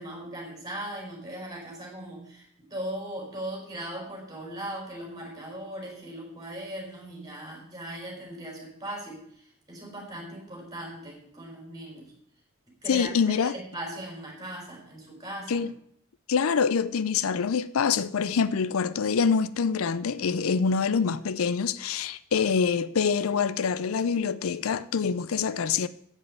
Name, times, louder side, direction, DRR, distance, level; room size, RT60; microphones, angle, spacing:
voice 1, 0.0-12.1 12.8-15.7, right 1 dB, 20° right, 4.4 m, -39 dB
voice 2, 12.9-13.5 15.5-15.7 16.3-25.9, left 6 dB, 80° left, 0.5 m, -25 dB
8.2 x 7.5 x 8.2 m
head